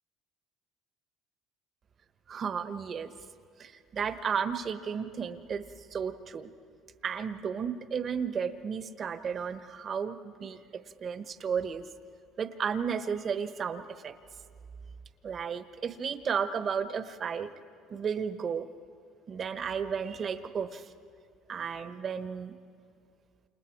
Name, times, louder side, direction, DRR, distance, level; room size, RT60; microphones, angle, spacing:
voice 1, 2.3-3.1 3.6-5.6 5.9-6.5 7.0-11.9 12.4-14.1 15.2-17.5 17.9-18.7 19.3-20.9 21.5-22.5, right 6 dB, 45° right, 11 dB, 1.1 m, -33 dB
29.0 x 27.5 x 4.7 m, 2.4 s
supercardioid pair, 90°, 0 cm